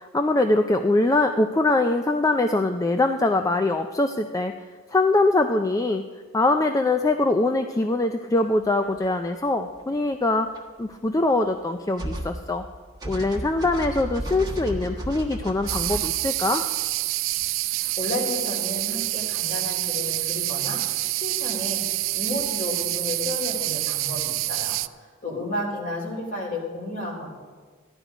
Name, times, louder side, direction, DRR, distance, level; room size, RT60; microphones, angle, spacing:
voice 1, 0.0-4.5 4.9-6.0 6.3-10.5 10.8-12.7 13.1-16.6, left 2 dB, 15° left, 6 dB, 0.4 m, -23 dB
sound 1, 9.0-9.1 10.5-10.6 12.0-12.7 13.0-16.1, right 1 dB, 20° right, 1.4 m, -33 dB
sound 2, 15.7-24.9, right 18 dB, 75° right, 0.4 m, -27 dB
voice 2, 18.0-27.3, left 1 dB, 40° left, -1 dB, 3.5 m, -32 dB
14.5 x 11.5 x 5.0 m, 1.5 s
head